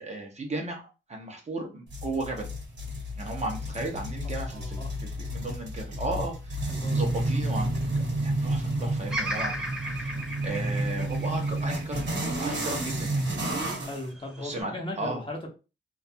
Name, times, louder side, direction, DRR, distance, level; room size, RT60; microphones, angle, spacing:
voice 1, 0.0-2.5 3.2-9.6 9.9-10.2 10.4-13.2 14.4-15.2, right 2 dB, 30° right, 1 dB, 0.7 m, -35 dB
sound 1, 1.9-14.0, right 1 dB, 55° right, 1.0 m, -31 dB
voice 2, 4.5-4.9 6.7-7.1 13.8-15.5, left 1 dB, 25° left, 1 dB, 0.7 m, -37 dB
Bird vocalization bird call bird song, 9.1-13.3 13.9-14.6, right 1 dB, 5° right, 0.8 m, -36 dB
2.4 x 2.3 x 2.6 m, 0.30 s
cardioid pair, 115°, 21 cm